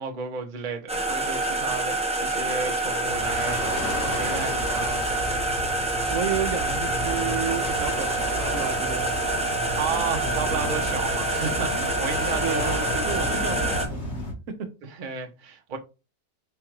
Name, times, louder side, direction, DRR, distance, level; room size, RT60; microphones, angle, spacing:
voice 1, 0.0-5.5 9.8-12.8 14.8-15.8, right 5 dB, 40° right, 0.8 m, -33 dB
sound 1, 0.9-13.9, right 2 dB, 5° right, 0.5 m, -27 dB
sound 2, 3.0-14.3, equal, 50° left, 1.6 m, -33 dB
voice 2, 6.1-9.1 12.4-13.9, right 7 dB, 70° right, 1.0 m, -31 dB
4.5 x 2.5 x 4.5 m
omnidirectional pair, 1.5 m